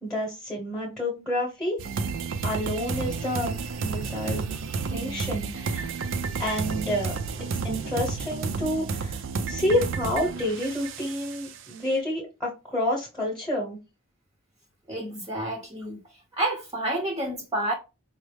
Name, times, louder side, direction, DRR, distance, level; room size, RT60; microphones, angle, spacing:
voice 1, 0.0-1.8 2.4-4.6 4.8-5.9 6.4-7.2 7.6-9.2 9.5-13.8, left 1 dB, ahead, 1.0 m, -29 dB
sound 1, 1.8-11.7, right 4 dB, 65° right, 0.4 m, -31 dB
voice 2, 14.9-16.0 16.3-17.7, right 1 dB, 20° right, 0.7 m, -29 dB
4.7 x 2.0 x 3.3 m
head